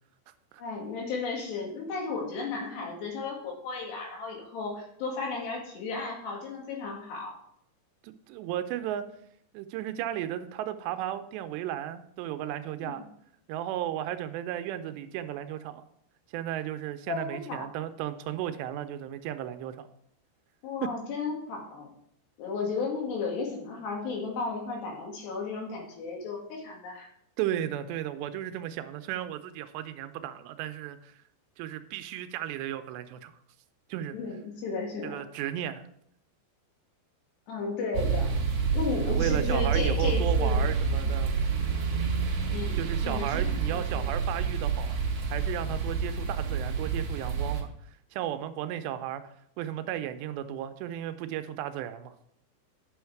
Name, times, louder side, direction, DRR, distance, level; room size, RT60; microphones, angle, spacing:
voice 1, 0.6-7.3 12.8-13.0 17.1-17.7 20.6-21.9 22.4-27.1 34.1-35.2 37.5-38.3 38.7-40.7 42.5-44.1, left 4 dB, 75° left, -1 dB, 4.1 m, -34 dB
voice 2, 8.0-9.0 9.5-13.0 13.5-15.8 16.3-19.9 27.4-31.1 31.6-33.3 33.9-34.2 35.0-35.9 39.0-41.3 42.8-45.0 45.3-47.7 48.1-49.2 49.6-52.1, right 11 dB, 85° right, 9 dB, 2.8 m, -34 dB
sound 1, 37.9-47.6, right 5 dB, 50° right, 2.6 m, -28 dB
9.7 x 6.4 x 4.6 m, 0.71 s
omnidirectional pair, 4.9 m